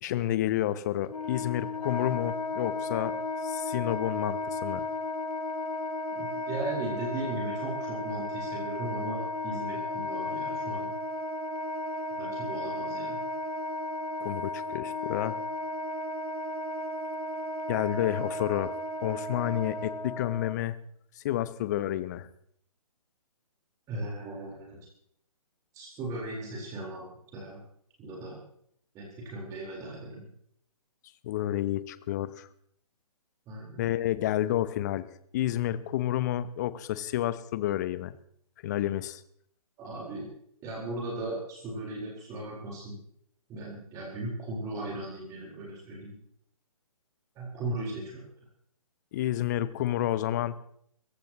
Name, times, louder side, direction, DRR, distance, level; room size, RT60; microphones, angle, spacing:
voice 1, 0.0-3.1 3.4-4.8 14.2-15.4 17.7-18.7 19.0-20.8 21.2-22.3 31.2-32.5 33.8-35.1 35.3-38.1 38.6-39.2 49.1-50.6, left 13 dB, 30° left, 15 dB, 0.8 m, -30 dB
Wind instrument woodwind instrument, 1.0-20.5, left 2 dB, 80° left, 1.3 m, -34 dB
voice 2, 6.1-10.9 12.2-13.2 23.9-24.8 25.7-27.6 28.0-28.4 28.9-30.2 33.5-33.9 39.8-40.3 40.6-43.0 43.5-46.2 47.3-48.2, right 2 dB, 20° right, -3 dB, 4.3 m, -37 dB
26.5 x 15.0 x 3.0 m, 0.68 s
figure-of-eight pair, 135°, 19 cm